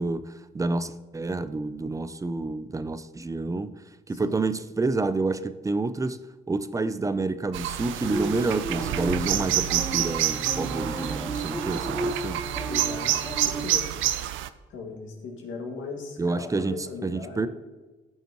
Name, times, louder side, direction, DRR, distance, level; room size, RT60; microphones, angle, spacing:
voice 1, 0.0-3.7 4.1-6.2 6.5-12.4 16.2-16.7 17.0-17.5, right 3 dB, 15° right, 13 dB, 0.4 m, -28 dB
voice 2, 4.1-4.4 12.7-13.9 14.7-17.5, left 4 dB, 80° left, 0 dB, 2.0 m, -38 dB
sound 1, 7.5-14.5, right 12 dB, 80° right, 0.4 m, -28 dB
sound 2, 8.0-13.6, right 2 dB, ahead, 2.3 m, -34 dB
14.5 x 5.5 x 3.0 m, 1.2 s
cardioid pair, 90°, 20 cm